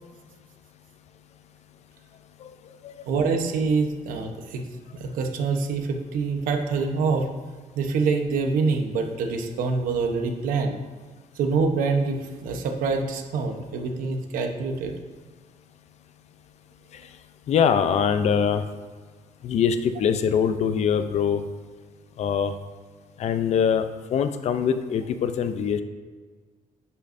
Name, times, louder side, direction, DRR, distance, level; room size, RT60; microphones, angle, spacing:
voice 1, 3.1-4.6 4.9-7.3 7.8-10.8 11.4-14.9, right 4 dB, 90° right, 4 dB, 1.0 m, -25 dB
voice 2, 17.5-18.6 19.4-21.4 22.2-22.5 23.2-25.8, left 7 dB, 55° left, 10 dB, 0.5 m, -23 dB
10.5 x 5.6 x 2.6 m, 1.5 s
cardioid pair, 135°, 14 cm